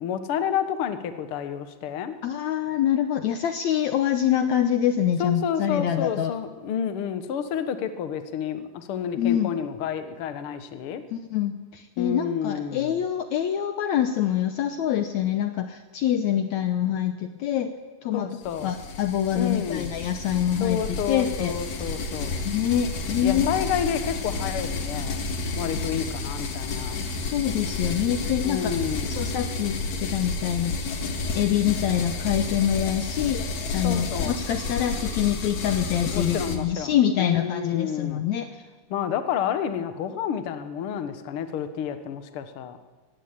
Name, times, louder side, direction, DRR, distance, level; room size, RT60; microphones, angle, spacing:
voice 1, 0.0-2.1 5.2-11.0 12.0-13.0 18.1-18.7 19.3-19.9 20.6-22.4 23.2-27.0 28.4-29.2 33.8-34.4 36.1-38.2 38.9-42.8, left 8 dB, 70° left, 9 dB, 1.3 m, -30 dB
voice 2, 2.2-6.3 9.2-9.5 11.1-17.7 18.0-18.3 18.6-21.5 22.4-23.5 25.7-25.8 27.2-28.7 29.1-31.0 31.3-33.5 33.7-38.6, left 10 dB, 90° left, 8 dB, 1.6 m, -25 dB
sound 1, 18.4-36.6, left 3 dB, 55° left, 2.6 m, -31 dB
16.5 x 16.0 x 10.0 m, 1.3 s
omnidirectional pair, 4.4 m